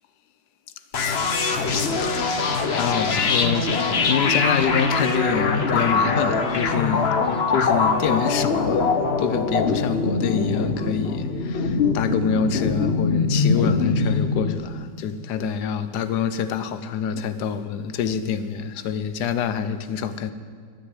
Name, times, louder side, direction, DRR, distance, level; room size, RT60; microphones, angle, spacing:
sound 1, 0.9-14.5, left 4 dB, 45° left, 1.1 m, -22 dB
voice 1, 2.0-7.2 7.5-20.3, left 7 dB, 85° left, 1.4 m, -26 dB
11.5 x 10.0 x 9.1 m
omnidirectional pair, 1.7 m